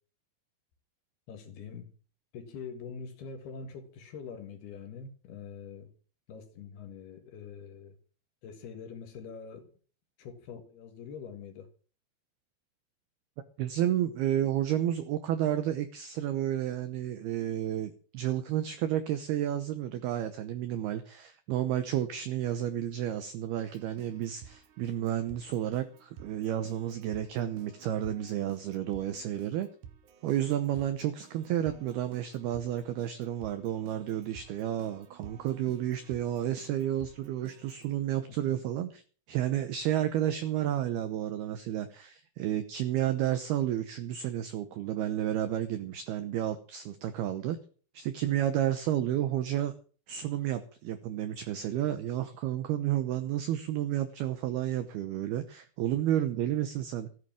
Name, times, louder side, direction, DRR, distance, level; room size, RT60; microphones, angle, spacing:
voice 1, 1.3-1.9 2.3-5.9 6.3-8.0 8.4-9.7 10.2-11.7 38.5-38.6, left 6 dB, 65° left, 3.0 m, -44 dB
voice 2, 13.6-29.7 30.2-39.0 39.3-47.6 47.9-49.7 50.1-57.1, right 11 dB, 85° right, 2.2 m, -31 dB
Keyboard (musical), 23.6-38.0, right 8 dB, 65° right, 3.2 m, -53 dB
14.5 x 9.7 x 7.3 m
omnidirectional pair, 5.9 m